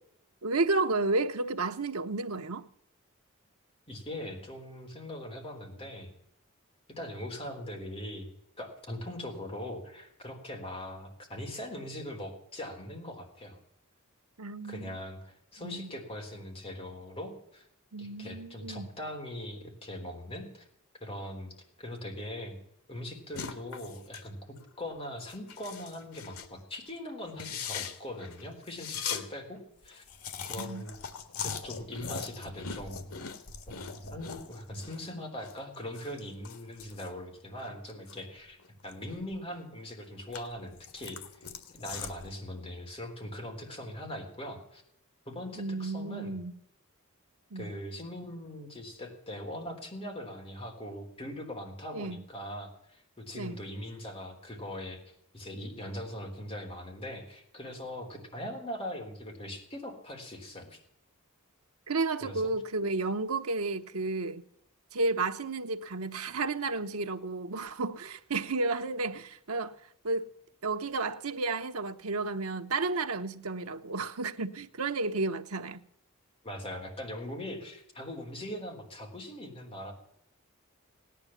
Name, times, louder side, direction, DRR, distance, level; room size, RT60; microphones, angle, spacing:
voice 1, 0.4-2.7 14.4-14.9 15.6-15.9 17.9-18.9 30.6-30.8 45.6-46.5 47.5-47.7 51.9-52.2 53.3-53.6 61.9-64.4 64.9-69.8 70.0-70.3 70.6-75.8, right 3 dB, 80° right, 1.0 m, -32 dB
voice 2, 3.9-6.1 7.0-8.3 8.6-13.6 14.7-17.7 18.0-20.6 21.0-22.6 22.9-30.0 30.5-31.0 31.4-33.1 33.7-41.4 41.7-44.8 45.3-46.4 47.6-55.0 55.3-60.8 62.2-62.4 76.4-79.9, left 1 dB, 25° left, 3.8 m, -41 dB
sound 1, 23.3-24.3 24.6-24.8 25.2-26.5 26.9-27.0 27.3-29.2 29.6-29.7 29.8-35.0 35.3-38.2 38.6-39.6 40.0-42.3, left 6 dB, 85° left, 1.8 m, -41 dB
17.5 x 10.5 x 7.2 m
head